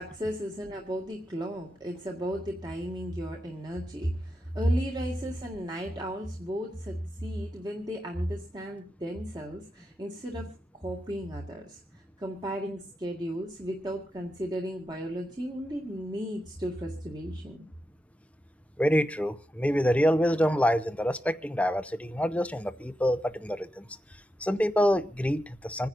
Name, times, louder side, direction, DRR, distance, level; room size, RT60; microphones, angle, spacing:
voice 1, 0.0-11.8 12.2-17.7, equal, 20° right, 1.9 m, -34 dB
voice 2, 18.8-23.8 24.4-25.9, equal, 5° left, 0.8 m, -26 dB
27.0 x 10.5 x 2.5 m
head